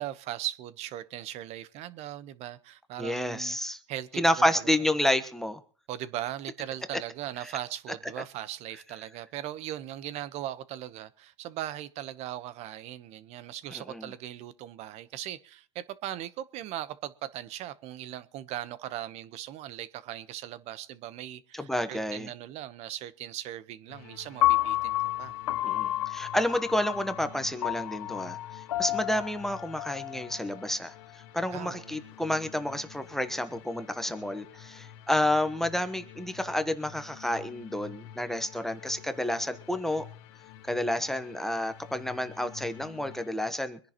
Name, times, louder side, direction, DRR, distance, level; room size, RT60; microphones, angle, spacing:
voice 1, 0.0-4.5 5.9-25.3 31.5-32.0, right 13 dB, 40° right, 1.0 m, -39 dB
voice 2, 3.0-3.8 4.1-5.6 7.4-7.5 13.7-14.1 21.5-22.3 25.6-30.9 31.3-40.1 40.7-43.8, left 1 dB, ahead, 1.1 m, -30 dB
sound 1, 23.9-43.3, left 12 dB, 55° left, 1.3 m, -50 dB
Piano, 24.4-30.6, left 15 dB, 80° left, 1.0 m, -30 dB
24.5 x 10.5 x 3.0 m
hypercardioid pair, 115°, 17 cm